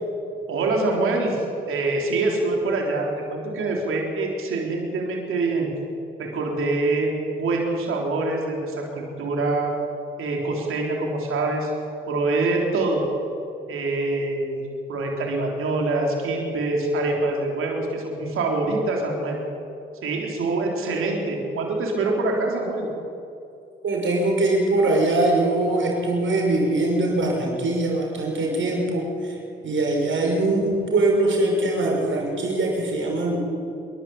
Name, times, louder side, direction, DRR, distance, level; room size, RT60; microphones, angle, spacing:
voice 1, 0.5-5.7 6.2-7.1 7.4-9.7 10.2-11.7 12.1-13.0 13.7-14.6 14.9-19.4 20.0-22.9, right 2 dB, 85° right, 0 dB, 3.7 m, -25 dB
voice 2, 23.8-29.4 29.6-33.4, right 2 dB, 70° right, 0 dB, 6.1 m, -22 dB
26.5 x 12.0 x 8.7 m, 2.7 s
supercardioid pair, 55°, 21 cm